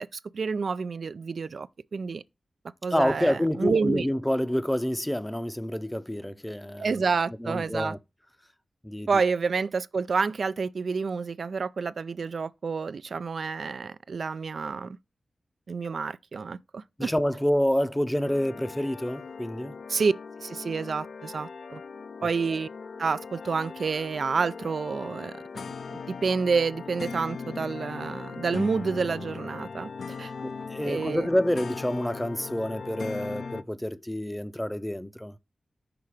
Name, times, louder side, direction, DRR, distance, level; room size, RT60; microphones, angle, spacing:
voice 1, 0.0-2.2 2.8-4.1 6.8-7.9 9.1-15.0 15.7-17.1 19.9-20.1 20.4-21.8 22.2-22.7 23.0-25.6 26.1-30.3 30.9-31.3, right 5 dB, 70° right, 0.3 m, -29 dB
voice 2, 2.9-7.0 7.4-8.0 8.8-9.1 17.0-19.7 30.4-35.4, equal, 10° left, 0.5 m, -28 dB
sound 1, 18.2-33.6, left 5 dB, 75° left, 0.4 m, -39 dB
5.8 x 3.8 x 4.8 m
wide cardioid pair, 90°, 0 cm